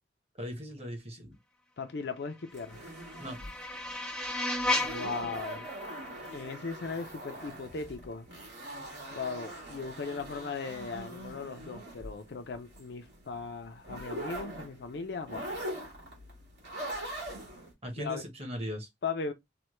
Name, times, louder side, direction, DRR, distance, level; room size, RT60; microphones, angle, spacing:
voice 1, 0.4-1.4 3.2-3.4 17.8-18.9, equal, 35° right, 1.0 m, -38 dB
voice 2, 1.8-2.8 4.8-5.6 6.3-8.3 9.1-15.5 18.0-18.2 19.0-19.3, left 4 dB, 65° left, 0.5 m, -38 dB
sound 1, 2.4-7.4, left 2 dB, 5° left, 0.4 m, -35 dB
sound 2, 2.5-17.7, right 1 dB, 90° right, 1.6 m, -43 dB
3.2 x 2.2 x 3.0 m
head